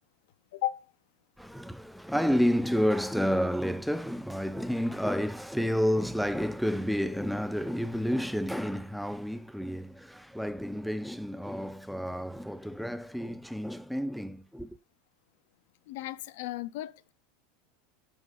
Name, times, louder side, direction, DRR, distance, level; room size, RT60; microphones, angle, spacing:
voice 1, 0.5-0.8 15.9-17.1, left 15 dB, 70° left, 0.4 m, -35 dB
voice 2, 1.4-14.7, equal, ahead, 0.4 m, -30 dB
5.4 x 5.3 x 4.9 m
hypercardioid pair, 85°, 0 cm